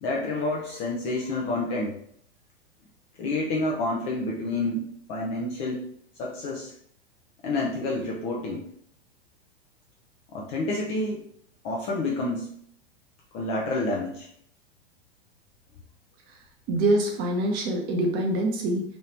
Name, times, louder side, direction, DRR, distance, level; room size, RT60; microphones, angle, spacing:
voice 1, 0.0-2.0 3.2-5.8 6.2-6.7 7.4-8.7 10.3-11.2 11.6-12.5 13.3-14.3, left 2 dB, 20° left, -2 dB, 0.4 m, -29 dB
voice 2, 16.7-18.8, right 1 dB, 30° right, 2 dB, 0.7 m, -24 dB
3.0 x 2.7 x 3.2 m, 0.64 s
figure-of-eight pair, 95°, 32 cm